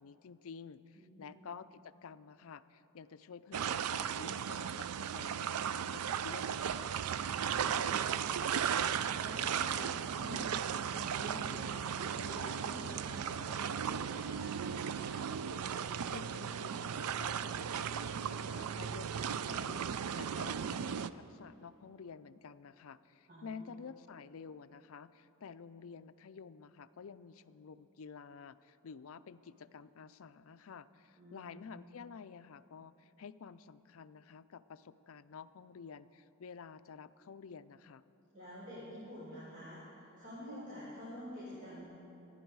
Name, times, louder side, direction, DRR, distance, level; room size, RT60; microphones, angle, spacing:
voice 1, 0.0-6.9 16.1-38.0, left 6 dB, 65° left, 14 dB, 0.4 m, -51 dB
voice 2, 0.9-1.3 7.2-8.8 9.1-15.2 23.3-23.8 31.2-31.6 38.3-41.8, equal, 35° right, -9 dB, 4.2 m, -48 dB
sound 1, 3.5-21.1, right 8 dB, 80° right, 0.4 m, -36 dB
26.5 x 9.9 x 4.7 m, 3.0 s
head